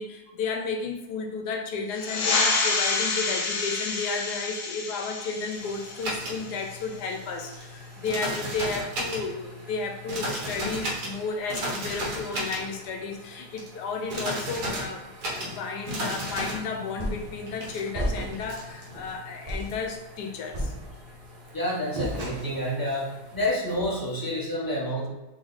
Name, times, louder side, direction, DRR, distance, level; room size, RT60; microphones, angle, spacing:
voice 1, 0.0-20.9, left 4 dB, 90° left, 3 dB, 1.2 m, -33 dB
sound 1, 1.9-7.0, left 4 dB, 65° left, 0.9 m, -29 dB
sound 2, 5.6-23.4, right 1 dB, 70° right, 1.6 m, -36 dB
sound 3, 17.0-17.4 17.9-18.5 18.9-19.1 19.5-19.8 20.5-21.2 22.0-22.7, equal, 45° right, 0.5 m, -32 dB
voice 2, 21.5-23.1 23.3-25.1, equal, 15° left, -6 dB, 1.1 m, -28 dB
3.6 x 3.3 x 3.9 m, 1.1 s
omnidirectional pair, 1.7 m